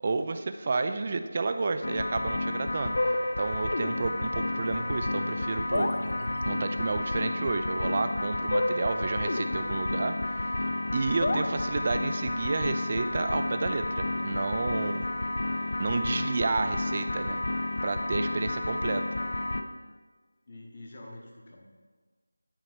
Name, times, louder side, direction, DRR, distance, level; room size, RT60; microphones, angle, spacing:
voice 1, 0.0-3.0 3.4-5.9 6.5-10.5 10.9-15.0 15.8-17.4 17.8-19.0, right 3 dB, 30° right, 8 dB, 0.3 m, -31 dB
sound 1, 1.8-19.6, left 2 dB, 50° left, 0.4 m, -30 dB
sound 2, 3.0-10.9, left 1 dB, 75° left, 0.8 m, -45 dB
voice 2, 14.9-15.7 20.5-21.6, left 1 dB, 35° left, 0 dB, 0.9 m, -48 dB
8.8 x 3.0 x 4.4 m, 1.5 s
figure-of-eight pair, 170°, 0 cm